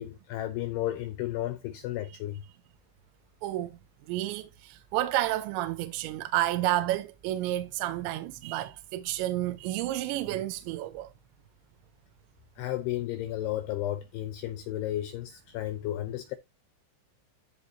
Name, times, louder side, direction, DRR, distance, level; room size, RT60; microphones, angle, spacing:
voice 1, 0.0-2.4 12.6-16.4, left 13 dB, 85° left, 2.3 m, -33 dB
voice 2, 3.4-3.7 4.1-11.1, right 15 dB, 85° right, 2.9 m, -30 dB
14.0 x 4.8 x 2.8 m
omnidirectional pair, 5.5 m